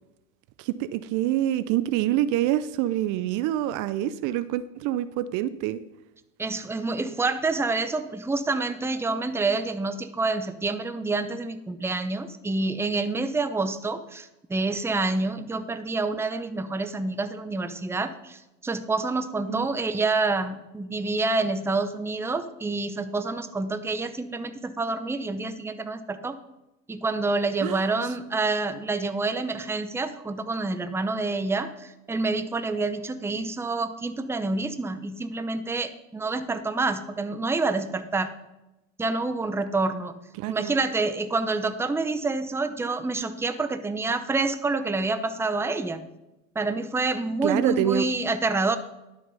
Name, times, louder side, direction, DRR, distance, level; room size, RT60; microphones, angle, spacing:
voice 1, 0.6-5.8 19.5-19.7 27.6-27.9 40.4-40.7 47.4-48.1, right 13 dB, 50° right, 15 dB, 0.6 m, -26 dB
voice 2, 6.4-26.4 26.9-38.3 39.0-40.1 40.5-46.0 46.5-48.8, right 3 dB, 5° right, 11 dB, 0.7 m, -27 dB
11.5 x 6.6 x 5.4 m, 0.96 s
hypercardioid pair, 90°, 39 cm